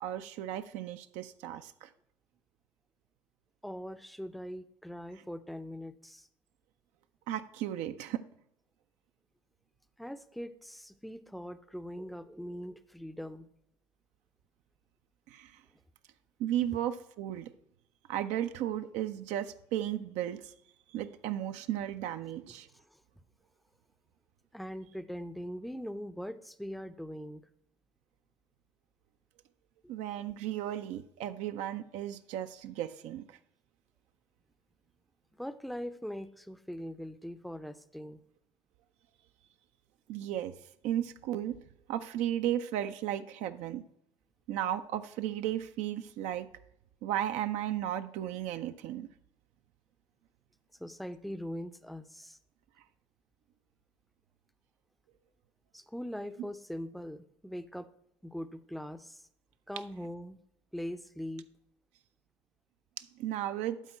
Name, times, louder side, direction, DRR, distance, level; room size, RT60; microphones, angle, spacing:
voice 1, 0.0-1.9 7.3-8.2 15.3-15.5 16.4-17.5 18.1-20.5 20.9-22.7 29.9-33.3 40.1-40.5 40.8-41.6 41.9-43.8 44.5-46.5 47.0-49.1 63.0-63.8, right 11 dB, 55° right, 10 dB, 0.5 m, -34 dB
voice 2, 3.6-6.3 10.0-13.5 24.5-27.4 35.4-38.2 50.8-52.4 55.7-57.9 58.2-59.2 59.7-60.4 60.7-61.5, equal, ahead, 11 dB, 0.6 m, -41 dB
11.5 x 4.3 x 4.3 m, 0.75 s
figure-of-eight pair, 60°, 14 cm